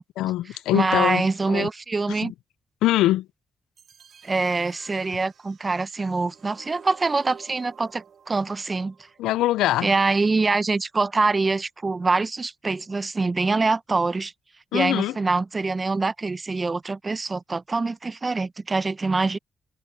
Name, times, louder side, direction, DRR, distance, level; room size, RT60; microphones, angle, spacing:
voice 1, 0.2-1.7 2.2-2.3 2.8-3.3 9.2-9.9 14.7-15.1, left 15 dB, 90° left, 0.4 m, -23 dB
voice 2, 0.7-2.3 4.2-8.9 9.8-14.3 14.7-19.4, right 3 dB, 35° right, 0.9 m, -24 dB
sound 1, 3.8-9.8, right 7 dB, 65° right, 3.6 m, -51 dB
supercardioid pair, 55°, 0 cm